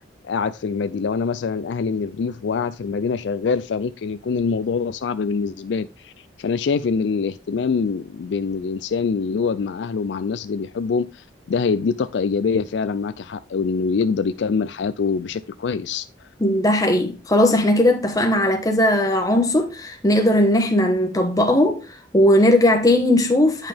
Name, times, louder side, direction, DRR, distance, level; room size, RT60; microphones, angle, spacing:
voice 1, 0.2-6.1 6.4-16.3, left 5 dB, 70° left, 0.4 m, -24 dB
voice 2, 16.4-21.8 22.1-23.7, left 1 dB, 20° left, 1.2 m, -18 dB
9.0 x 5.6 x 3.4 m
head